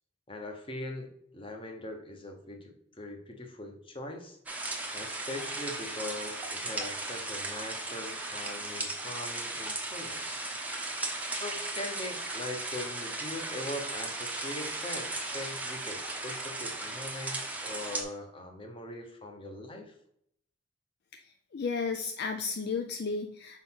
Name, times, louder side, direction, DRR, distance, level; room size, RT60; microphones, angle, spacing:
voice 1, 0.3-4.4 4.9-10.4 11.3-19.9, left 1 dB, 25° left, 3 dB, 1.0 m, -41 dB
sound 1, 4.5-18.0, right 2 dB, 10° right, 0.7 m, -36 dB
voice 2, 21.1-23.6, left 4 dB, 50° left, 7 dB, 0.4 m, -34 dB
5.3 x 4.0 x 5.8 m, 0.71 s
head